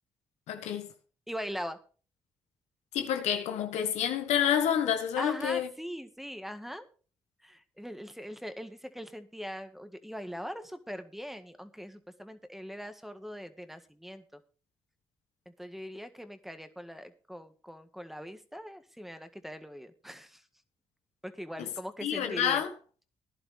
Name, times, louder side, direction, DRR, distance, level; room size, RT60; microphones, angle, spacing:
voice 1, 0.5-0.9 2.9-5.7 21.6-21.7 22.0-22.7, left 9 dB, 80° left, 1.5 m, -28 dB
voice 2, 1.3-1.8 5.2-6.9 7.4-14.4 15.4-20.4 21.2-22.6, equal, ahead, 1.7 m, -41 dB
16.0 x 11.0 x 3.5 m
supercardioid pair, 50°, 11 cm